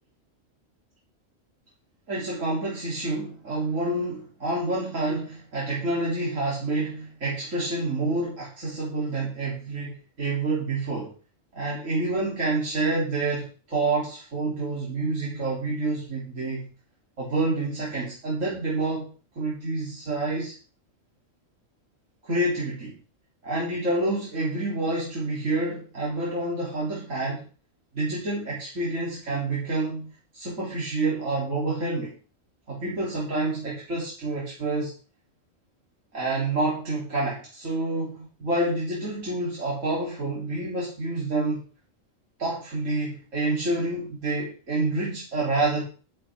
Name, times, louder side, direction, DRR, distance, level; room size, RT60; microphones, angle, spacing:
voice 1, 2.1-11.1 11.5-16.7 17.2-20.5 22.2-23.0 23.4-27.5 27.9-32.2 32.7-34.9 36.1-41.6 42.4-45.8, right 2 dB, 75° right, -6 dB, 4.1 m, -28 dB
11.5 x 11.5 x 3.8 m, 0.35 s
omnidirectional pair, 1.3 m